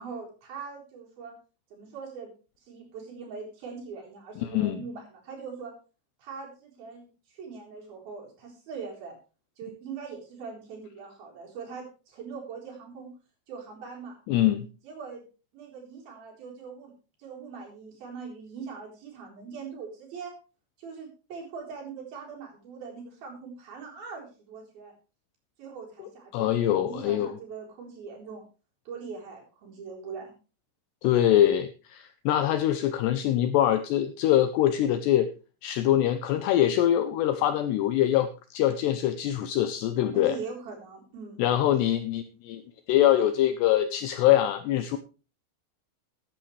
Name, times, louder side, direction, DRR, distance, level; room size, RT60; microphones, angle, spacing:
voice 1, 0.0-1.3 1.7-2.3 2.7-5.7 6.2-9.2 9.6-13.1 13.5-14.2 14.8-15.2 15.5-16.9 17.2-20.3 20.8-24.9 25.6-26.5 26.8-28.4 28.9-30.3 40.1-41.4, right 5 dB, 50° right, -1 dB, 5.4 m, -41 dB
voice 2, 4.4-4.8 14.3-14.7 26.3-27.3 31.0-35.3 35.6-40.4 41.4-42.6 42.9-45.0, left 12 dB, 90° left, 10 dB, 2.4 m, -24 dB
15.0 x 11.5 x 3.2 m, 0.34 s
omnidirectional pair, 5.7 m